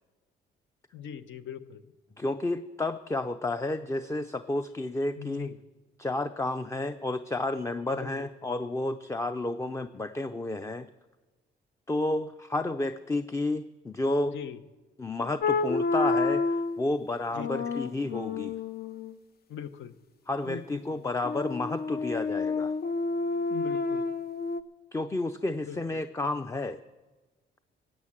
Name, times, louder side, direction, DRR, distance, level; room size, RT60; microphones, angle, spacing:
voice 1, 0.9-1.9 5.2-5.6 7.9-8.3 14.3-14.6 17.3-17.7 19.5-19.9 20.4-20.6 20.9-21.0 23.5-24.1 25.6-26.0, left 8 dB, 75° left, 12 dB, 0.9 m, -41 dB
voice 2, 2.2-5.5 6.0-10.9 11.9-14.4 15.0-18.6 20.3-22.7 24.9-26.8, left 2 dB, 15° left, 10 dB, 0.5 m, -31 dB
sound 1, 15.4-16.8 17.4-19.1 21.2-24.6, left 3 dB, 50° left, 0.7 m, -29 dB
16.0 x 8.6 x 7.4 m, 1.2 s
cardioid pair, 90°, 20 cm